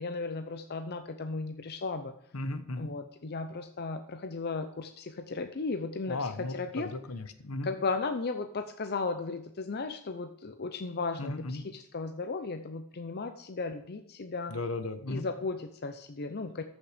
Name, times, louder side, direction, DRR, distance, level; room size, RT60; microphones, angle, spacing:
voice 1, 0.0-2.1 2.8-6.9 7.6-14.6 15.1-16.6, left 3 dB, 45° left, 8 dB, 0.7 m, -35 dB
voice 2, 2.3-2.9 6.1-7.7 11.2-11.7 14.5-15.2, left 2 dB, 70° left, 10 dB, 1.1 m, -36 dB
14.0 x 6.4 x 5.0 m, 0.73 s
head